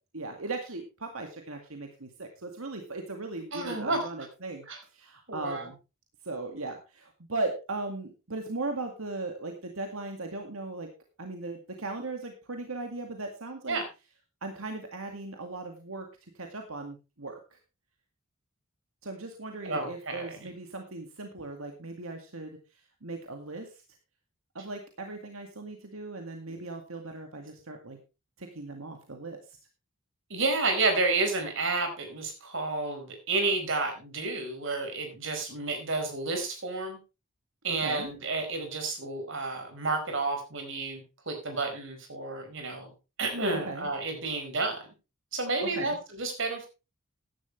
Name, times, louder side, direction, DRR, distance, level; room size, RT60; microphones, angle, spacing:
voice 1, 0.1-5.8 6.2-10.9 11.2-13.8 14.4-16.1 16.3-17.6 19.0-22.6 23.0-23.8 24.5-28.0 28.4-29.6 37.7-38.1 43.5-43.9 45.6-46.0, right 2 dB, 85° right, 4 dB, 2.1 m, -38 dB
voice 2, 3.5-4.0 4.7-4.8 5.3-5.7 13.7-13.9 19.6-20.5 26.5-26.6 30.3-37.0 37.6-42.9 43.2-44.8 45.3-46.7, right 3 dB, 60° right, 5 dB, 4.6 m, -31 dB
15.0 x 11.0 x 3.3 m, 0.30 s
head